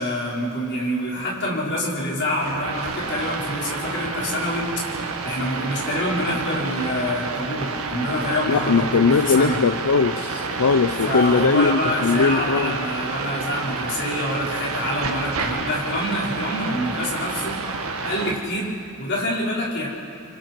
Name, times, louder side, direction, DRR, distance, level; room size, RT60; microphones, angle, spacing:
voice 1, 0.0-4.7 5.2-9.6 11.0-17.6 18.0-18.7 19.0-19.9, left 1 dB, 55° left, -5 dB, 5.3 m, -26 dB
sound 1, 2.4-18.3, right 4 dB, 80° right, 1.9 m, -29 dB
voice 2, 8.5-12.8, left 4 dB, 80° left, 9 dB, 0.6 m, -20 dB
29.5 x 25.0 x 4.7 m, 2.5 s
head